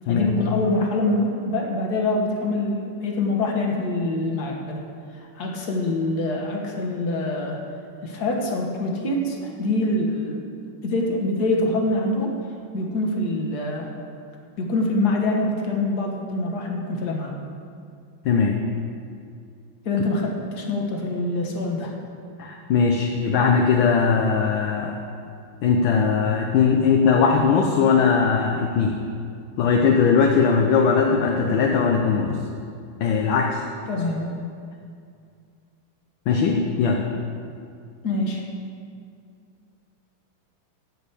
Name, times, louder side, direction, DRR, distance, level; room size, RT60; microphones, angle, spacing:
voice 1, 0.1-4.8 5.4-7.6 8.0-10.4 10.8-12.3 12.7-13.9 14.6-17.3 19.9-22.0 33.9-34.3 38.0-38.4, left 2 dB, 50° left, 0 dB, 1.8 m, -25 dB
voice 2, 18.2-18.6 22.4-25.0 25.6-29.0 29.6-32.4 33.0-33.6 36.3-37.0, left 5 dB, 70° left, 1 dB, 1.5 m, -19 dB
13.5 x 5.1 x 8.3 m, 2.3 s
omnidirectional pair, 2.4 m